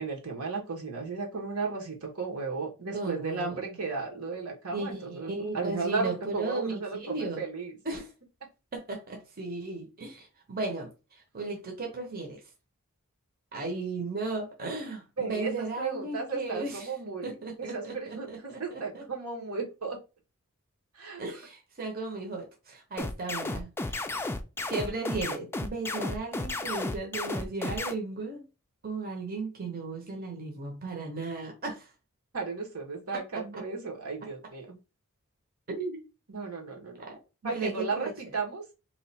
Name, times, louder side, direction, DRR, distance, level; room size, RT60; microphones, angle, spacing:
voice 1, 0.0-7.7 15.2-17.3 17.6-20.0 20.9-21.2 32.3-34.8 36.3-37.1 37.4-38.6, right 4 dB, 80° right, 1.3 m, -34 dB
voice 2, 2.9-3.7 4.7-7.4 7.8-8.1 8.7-12.4 13.5-16.9 17.2-19.0 21.2-24.0 24.7-28.4 28.8-31.9 33.3-33.6 35.7-36.0 37.0-37.2 37.4-38.1, right 3 dB, 45° right, 0.9 m, -36 dB
sound 1, 23.0-27.9, left 2 dB, 10° left, 0.3 m, -33 dB
3.0 x 2.4 x 4.1 m
head